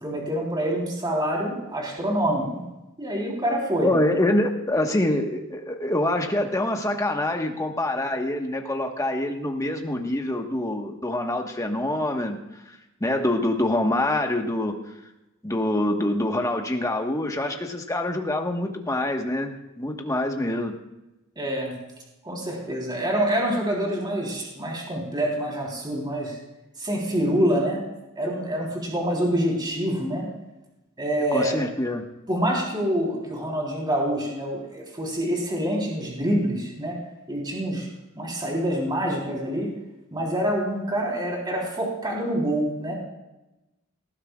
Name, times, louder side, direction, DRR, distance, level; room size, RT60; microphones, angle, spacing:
voice 1, 0.0-2.6 3.0-3.9 21.4-21.8 22.2-26.4 26.8-27.8 28.2-30.3 31.0-31.6 32.3-37.0 37.3-37.9 38.2-39.7 40.1-43.0, equal, 20° right, -2 dB, 3.6 m, -26 dB
voice 2, 3.8-12.4 12.7-14.8 15.4-20.7 31.3-32.1, left 1 dB, 15° left, 2 dB, 1.3 m, -25 dB
19.0 x 14.5 x 2.4 m, 0.98 s
head